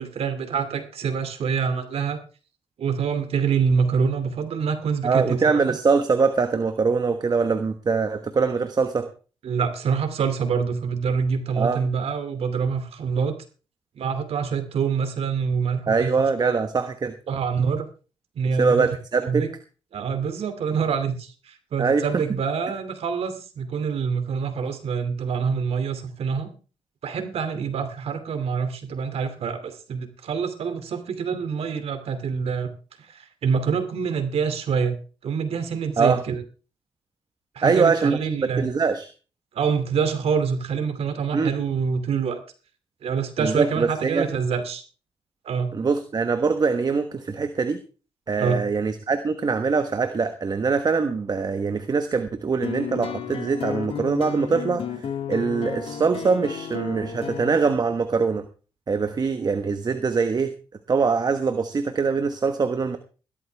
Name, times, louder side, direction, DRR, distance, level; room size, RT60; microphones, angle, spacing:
voice 1, 0.0-2.2 2.8-5.6 9.4-13.3 13.9-16.1 16.4-16.5 17.3-17.8 18.3-18.9 19.3-19.5 19.9-26.5 27.0-32.7 33.0-35.0 35.2-36.4 37.5-38.7 39.5-42.4 43.0-44.8 45.4-45.7 48.4-48.6, right 6 dB, 75° right, 9 dB, 2.6 m, -26 dB
voice 2, 5.0-9.1 11.6-11.8 15.9-17.1 18.6-19.4 21.8-22.2 36.0-36.2 37.6-39.1 41.3-41.5 43.4-44.3 45.7-47.8 48.3-58.4 58.9-60.5 60.9-63.0, right 5 dB, 40° right, 8 dB, 1.2 m, -23 dB
sound 1, 52.6-57.7, left 7 dB, 65° left, 2.1 m, -32 dB
16.5 x 13.0 x 3.5 m, 0.36 s
cardioid pair, 85°, 10 cm